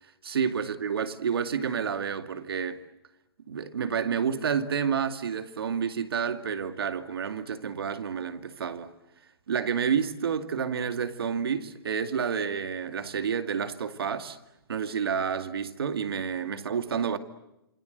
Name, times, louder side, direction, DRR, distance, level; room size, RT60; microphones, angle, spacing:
voice 1, 0.2-2.8 3.5-8.9 9.5-14.4 14.7-17.2, right 7 dB, 80° right, 2.3 m, -29 dB
27.5 x 25.0 x 8.0 m
hypercardioid pair, 175°, 12 cm